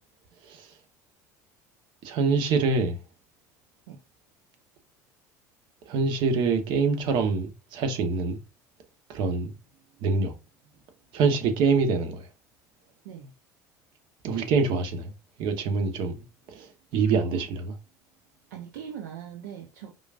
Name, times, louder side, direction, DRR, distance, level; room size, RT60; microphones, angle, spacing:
voice 1, 2.0-3.0 5.9-8.4 9.1-9.5 10.0-10.3 11.1-12.3 14.2-15.1 15.4-17.7, right 4 dB, 60° right, 1.2 m, -25 dB
voice 2, 18.5-19.9, right 8 dB, 75° right, 0.9 m, -41 dB
5.0 x 3.9 x 2.5 m
hypercardioid pair, 70°, 9 cm